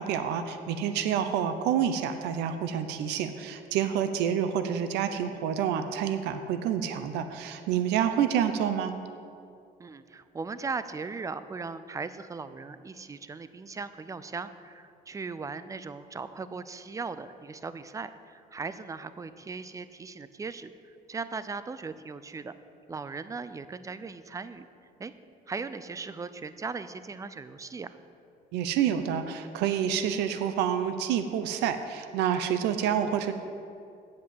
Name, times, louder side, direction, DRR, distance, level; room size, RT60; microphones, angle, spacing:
voice 1, 0.0-8.9 28.5-33.3, right 9 dB, 90° right, 9 dB, 0.7 m, -28 dB
voice 2, 9.8-22.5 22.9-24.7 25.0-25.1 25.5-28.0 33.2-33.3, right 4 dB, 20° right, 13 dB, 0.5 m, -38 dB
8.5 x 7.5 x 7.5 m, 2.4 s
cardioid pair, 110°, 17 cm